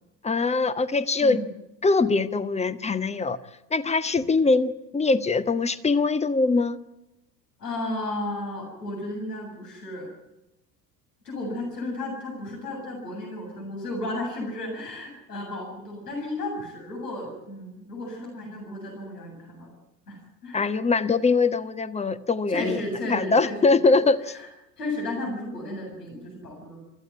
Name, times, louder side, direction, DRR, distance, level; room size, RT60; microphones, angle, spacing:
voice 1, 0.2-1.4 1.8-3.4 3.7-6.8 20.5-22.8 23.1-24.2, left 3 dB, 15° left, 14 dB, 1.2 m, -22 dB
voice 2, 7.6-10.1 11.2-19.7 20.1-20.7 22.5-23.8 24.2-24.5 24.8-26.8, left 1 dB, 75° left, 0 dB, 8.0 m, -33 dB
25.5 x 15.0 x 9.5 m, 0.91 s
figure-of-eight pair, 70°, 49 cm